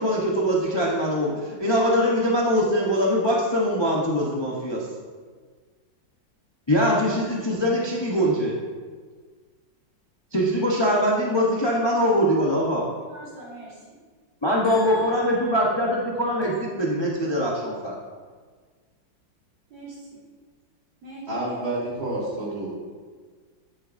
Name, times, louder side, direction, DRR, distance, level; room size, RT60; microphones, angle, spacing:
voice 1, 0.0-4.9 6.7-8.6 10.3-12.9 14.4-17.9, equal, 25° left, -4 dB, 0.5 m, -22 dB
voice 2, 13.1-14.0 14.6-15.6 19.7-20.2 21.0-21.6, right 1 dB, 70° right, -8 dB, 3.5 m, -43 dB
voice 3, 21.3-22.7, right 1 dB, 20° right, -6 dB, 2.0 m, -29 dB
10.0 x 7.8 x 2.6 m, 1.6 s
omnidirectional pair, 2.1 m